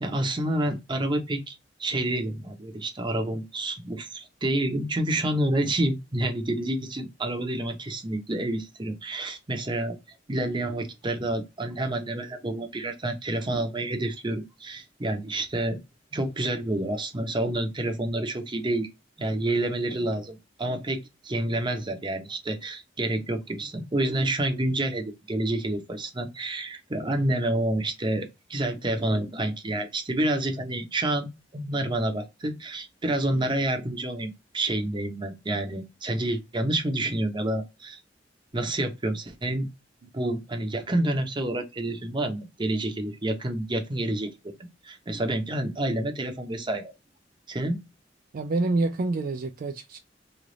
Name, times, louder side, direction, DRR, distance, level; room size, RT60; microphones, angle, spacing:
voice 1, 0.0-10.0 10.3-15.8 16.1-18.9 19.2-38.0 38.5-39.7 40.1-44.3 44.8-46.9 47.5-47.8, right 1 dB, 25° right, 0.8 m, -28 dB
voice 2, 48.3-50.0, right 2 dB, 50° right, 0.4 m, -27 dB
3.2 x 2.4 x 3.8 m
head